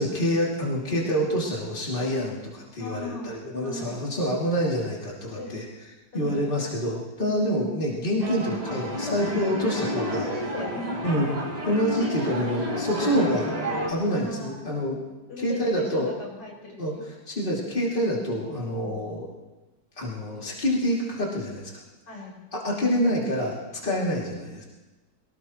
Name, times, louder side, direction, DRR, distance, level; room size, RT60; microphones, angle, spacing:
voice 1, 0.0-5.6 6.1-10.3 11.0-11.4 11.6-13.5 13.9-15.0 15.4-16.1 16.8-16.9 17.3-19.3 20.0-21.7 22.5-24.6, equal, 30° left, -4 dB, 3.0 m, -27 dB
voice 2, 2.8-3.3 3.6-4.0 5.4-5.6 6.1-6.5 7.2-7.5 9.0-9.2 10.0-11.0 12.0-12.5 12.9-13.3 14.1-14.7 15.3-17.1 18.7-19.2 22.1-22.4 22.8-23.3 23.8-24.5, left 2 dB, 90° left, -2 dB, 5.5 m, -38 dB
sound 1, 8.2-13.9, equal, 20° right, 2.3 m, -31 dB
24.0 x 17.5 x 3.1 m, 1.1 s
omnidirectional pair, 1.9 m